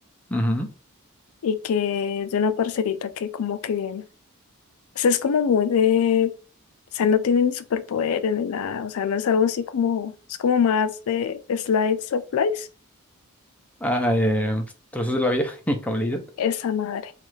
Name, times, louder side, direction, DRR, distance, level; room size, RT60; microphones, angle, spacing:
voice 1, 0.3-0.7 13.8-14.7 14.9-16.2, equal, 5° left, 0.5 m, -23 dB
voice 2, 1.4-4.0 5.0-6.3 6.9-10.1 10.4-12.7 16.4-17.1, left 7 dB, 70° left, 0.4 m, -23 dB
3.1 x 2.4 x 3.1 m
head